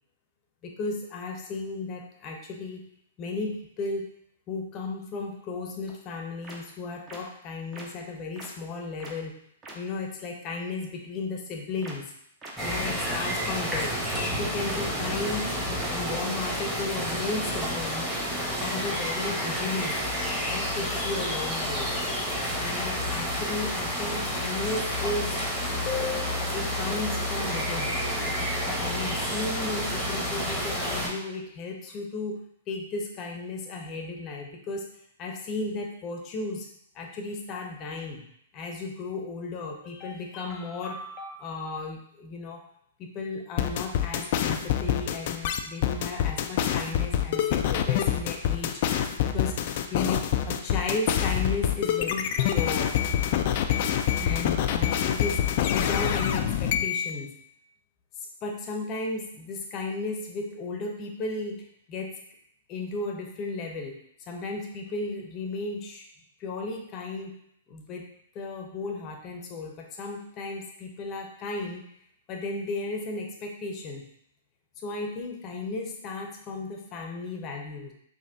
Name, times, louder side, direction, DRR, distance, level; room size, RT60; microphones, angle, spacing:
voice 1, 0.6-2.9 3.2-4.1 4.5-9.3 9.7-12.1 12.6-14.0 14.2-15.5 15.9-18.1 18.6-20.1 20.5-21.9 22.5-25.4 25.8-28.0 28.8-34.9 35.2-36.7 36.9-38.2 38.5-42.6 43.0-48.8 49.2-49.6 49.9-53.0 54.2-55.4 55.7-57.3 58.4-62.2 62.7-64.0 64.3-66.0 66.4-67.4 67.7-68.1 68.3-71.8 72.3-74.1 74.8-77.9, left 3 dB, 35° left, 1 dB, 0.7 m, -34 dB
sound 1, 5.9-6.0 6.4-6.6 7.1-7.2 7.7-7.8 8.4-8.5 9.0-9.1 9.6-9.7 11.8-11.9 12.4-12.5 13.0-13.1 13.5-13.6 14.1-14.2 14.7-14.8 15.2-15.3 15.8-15.9, right 2 dB, 25° right, 0.8 m, -42 dB
sound 2, 12.6-31.1, equal, 5° right, 1.1 m, -30 dB
sound 3, 43.6-57.1, left 10 dB, 50° left, 0.3 m, -26 dB
4.2 x 2.7 x 2.7 m, 0.70 s
figure-of-eight pair, 110°, 0 cm